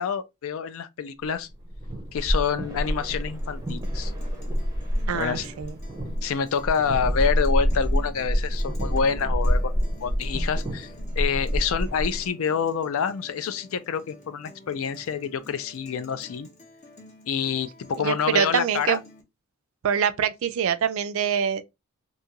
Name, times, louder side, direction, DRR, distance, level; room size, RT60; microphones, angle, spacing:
voice 1, 0.0-1.5 2.1-4.1 5.1-5.5 6.2-9.7 10.0-16.5 17.3-19.0, left 6 dB, 65° left, 0.4 m, -27 dB
sound 1, 1.5-12.3, equal, 15° right, 0.5 m, -27 dB
Guitar, 3.2-19.2, left 1 dB, 30° left, 0.7 m, -50 dB
voice 2, 5.1-5.8 18.0-19.0 19.8-21.6, right 8 dB, 65° right, 0.4 m, -25 dB
2.6 x 2.4 x 2.8 m
head